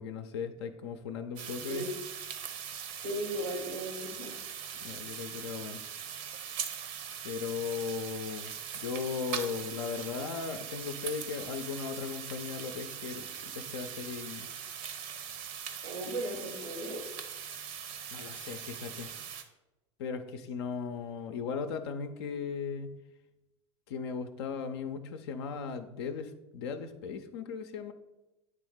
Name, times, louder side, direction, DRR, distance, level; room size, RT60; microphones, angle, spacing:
voice 1, 0.0-1.9 4.8-5.8 7.2-14.5 18.1-19.1 20.0-23.0 23.9-27.9, left 6 dB, 55° left, 7 dB, 0.6 m, -37 dB
sound 1, 1.4-19.4, right 8 dB, 50° right, 0.8 m, -41 dB
voice 2, 2.9-4.3 15.8-17.0, right 1 dB, 85° right, -2 dB, 1.3 m, -36 dB
9.1 x 3.5 x 4.8 m, 1.0 s
figure-of-eight pair, 80°, 16 cm